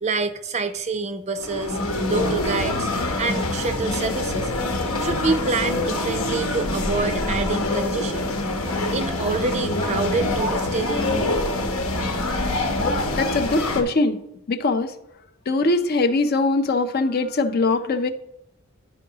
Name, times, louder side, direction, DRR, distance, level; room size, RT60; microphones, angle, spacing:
voice 1, 0.0-1.8 2.1-2.9 3.2-4.5 5.0-8.3 8.9-11.1, right 3 dB, 30° right, 9 dB, 0.4 m, -27 dB
sound 1, 1.4-13.8, left 2 dB, 75° left, 0.9 m, -25 dB
voice 2, 13.2-14.2 14.5-14.9 15.5-18.1, left 3 dB, 45° left, 10 dB, 0.5 m, -21 dB
11.5 x 4.6 x 2.8 m, 0.84 s
head